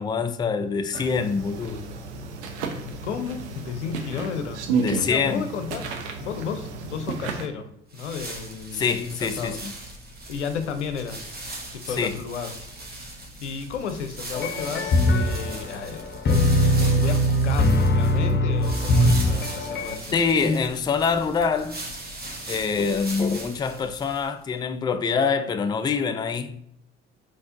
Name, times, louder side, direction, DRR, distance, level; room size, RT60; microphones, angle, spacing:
voice 1, 0.0-1.9 4.8-5.4 8.7-9.7 11.9-12.2 20.1-21.8 22.5-26.6, left 5 dB, 15° left, 0.3 m, -25 dB
sound 1, 0.9-7.5, right 4 dB, 75° right, 0.7 m, -32 dB
voice 2, 2.8-5.8 6.2-9.6 10.3-11.4 11.7-12.5 13.2-20.2, left 6 dB, 85° left, 0.5 m, -33 dB
sound 2, 7.9-24.4, right 1 dB, 30° right, 1.3 m, -39 dB
sound 3, 14.3-20.0, left 1 dB, 30° left, 0.7 m, -21 dB
4.7 x 4.2 x 2.5 m
figure-of-eight pair, 55°, 34 cm